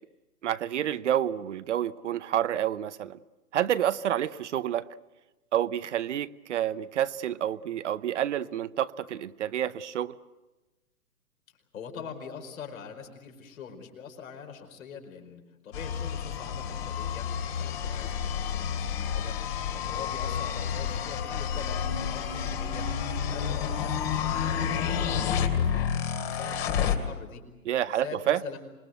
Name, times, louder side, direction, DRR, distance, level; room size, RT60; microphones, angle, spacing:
voice 1, 0.4-3.2 3.5-4.9 5.5-10.1 27.7-28.4, right 11 dB, 50° right, 14 dB, 0.8 m, -29 dB
voice 2, 11.7-17.3 17.6-19.4 19.7-22.9 23.3-25.9 26.2-27.4 27.9-28.6, left 6 dB, 60° left, 4 dB, 5.0 m, -44 dB
sound 1, 15.7-27.0, left 7 dB, 40° left, 2.7 m, -30 dB
26.0 x 21.5 x 7.9 m, 1.1 s
hypercardioid pair, 135°, 45 cm